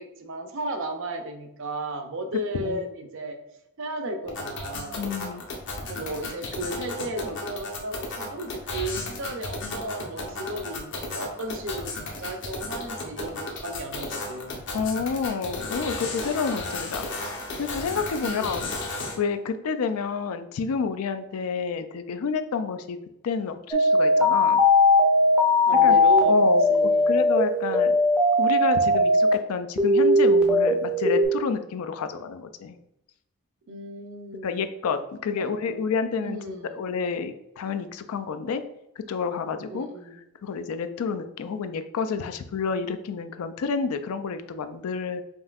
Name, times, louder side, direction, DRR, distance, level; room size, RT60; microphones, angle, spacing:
voice 1, 0.0-3.4 3.8-5.1 5.8-14.7 18.2-18.8 25.7-26.4 26.7-27.2 33.7-34.7 35.3-35.9 36.2-36.8 39.7-40.2, right 1 dB, 55° right, 6 dB, 0.5 m, -34 dB
sound 1, 4.2-19.2, left 2 dB, 55° left, 0.8 m, -34 dB
voice 2, 5.0-5.4 14.7-17.1 17.6-18.7 19.2-23.0 23.2-24.6 25.8-26.0 26.3-27.9 28.4-32.8 34.4-36.4 36.7-38.6 39.0-39.9 40.4-45.2, left 5 dB, 75° left, 10 dB, 0.4 m, -29 dB
sound 2, 23.7-29.3 29.8-31.3, left 1 dB, 5° right, 0.4 m, -19 dB
5.3 x 2.7 x 2.4 m, 0.85 s
head